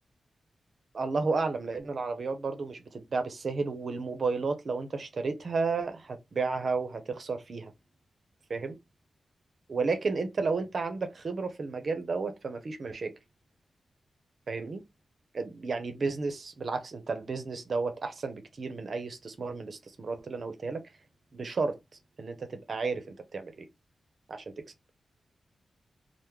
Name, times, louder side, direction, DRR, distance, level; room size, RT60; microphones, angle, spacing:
voice 1, 0.9-7.7 8.5-8.8 9.7-13.1 14.5-14.8 15.3-20.8 21.3-21.8 22.2-23.7 24.3-24.6, right 4 dB, 55° right, 0.7 m, -32 dB
3.0 x 2.1 x 3.5 m
wide cardioid pair, 105°, 0 cm